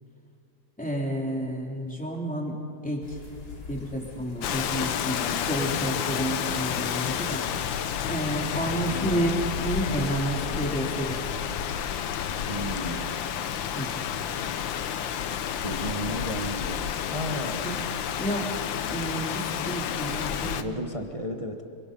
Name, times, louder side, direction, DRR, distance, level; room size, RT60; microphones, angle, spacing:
voice 1, 0.8-2.6 2.8-3.2 3.7-7.5 8.1-11.3 13.7-14.0 17.6-17.7 18.2-18.5 18.9-20.6, right 1 dB, 5° left, -1 dB, 3.3 m, -30 dB
sound 1, 3.0-19.2, left 2 dB, 45° left, 3.0 m, -46 dB
Rain, 4.4-20.6, left 9 dB, 70° left, 1.5 m, -30 dB
sound 2, 6.1-11.0, left 10 dB, 85° left, 1.7 m, -42 dB
voice 2, 8.6-9.3 12.5-13.3 15.6-17.9 20.4-21.6, equal, 20° right, 4 dB, 0.9 m, -34 dB
29.0 x 23.5 x 5.4 m, 2.4 s
omnidirectional pair, 2.3 m